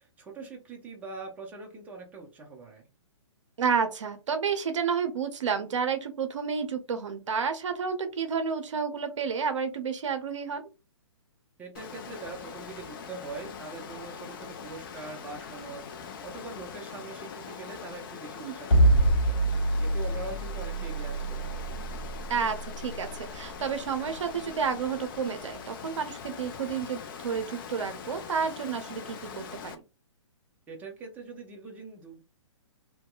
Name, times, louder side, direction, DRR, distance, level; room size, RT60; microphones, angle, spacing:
voice 1, 0.0-2.9 11.6-21.6 30.7-32.2, right 4 dB, 10° right, -1 dB, 0.6 m, -43 dB
voice 2, 3.6-10.6 18.4-18.5 22.3-29.8, right 6 dB, 70° right, 7 dB, 0.6 m, -30 dB
Water, 11.8-29.8, left 6 dB, 45° left, 0.5 m, -42 dB
sound 1, 18.7-24.9, right 1 dB, 80° left, 0.9 m, -26 dB
2.7 x 2.2 x 2.3 m, 0.29 s
hypercardioid pair, 130°, 16 cm